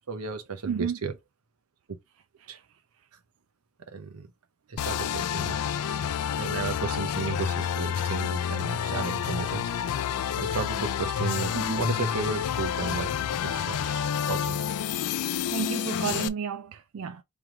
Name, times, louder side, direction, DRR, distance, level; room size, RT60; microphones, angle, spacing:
voice 1, 0.1-1.1 2.5-2.6 3.9-4.3 4.7-5.6 6.3-9.7 10.4-13.2 13.4-15.0, right 4 dB, 90° right, 0.9 m, -34 dB
voice 2, 0.7-1.0 2.4-2.6 11.5-11.8 15.5-17.2, right 7 dB, 65° right, 0.3 m, -32 dB
sound 1, 4.8-16.3, left 8 dB, 90° left, 0.4 m, -29 dB
3.5 x 3.1 x 3.5 m
head